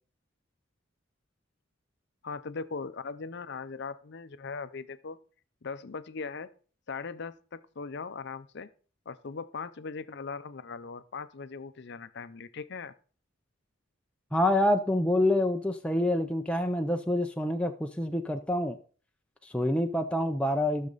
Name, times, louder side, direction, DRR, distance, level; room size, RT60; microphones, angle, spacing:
voice 1, 2.2-5.2 5.6-6.5 6.9-8.7 9.1-12.9, left 4 dB, 55° left, 13 dB, 0.6 m, -39 dB
voice 2, 14.3-18.8 19.4-20.9, left 1 dB, 5° left, 4 dB, 0.5 m, -27 dB
13.5 x 6.5 x 4.0 m, 0.42 s
head